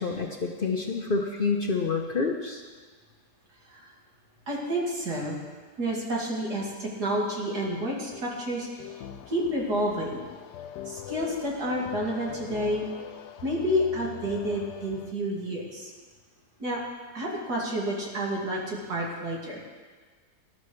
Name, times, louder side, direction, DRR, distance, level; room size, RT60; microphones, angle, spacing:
voice 1, 0.0-2.6, left 4 dB, 45° left, 2 dB, 0.8 m, -28 dB
voice 2, 4.5-5.4 5.8-8.9 9.3-10.2 10.8-12.8 13.4-15.9 16.6-16.8 17.1-19.7, equal, 80° right, -3 dB, 3.1 m, -30 dB
sound 1, 8.1-15.1, left 10 dB, 85° left, 1.2 m, -42 dB
19.0 x 11.5 x 3.3 m, 1.5 s
omnidirectional pair, 1.7 m